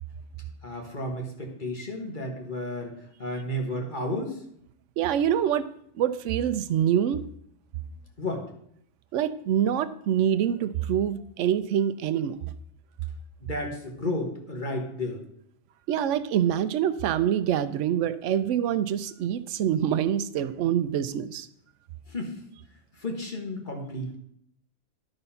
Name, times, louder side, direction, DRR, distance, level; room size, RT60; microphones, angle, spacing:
voice 1, 0.6-4.4 8.2-8.5 13.5-15.2 22.1-22.3 23.0-24.2, left 1 dB, 35° left, 1 dB, 1.5 m, -32 dB
voice 2, 5.0-5.7 6.0-7.2 9.1-12.5 15.9-21.5, right 9 dB, 70° right, 12 dB, 0.9 m, -25 dB
11.5 x 4.0 x 5.6 m, 0.69 s
omnidirectional pair, 1.4 m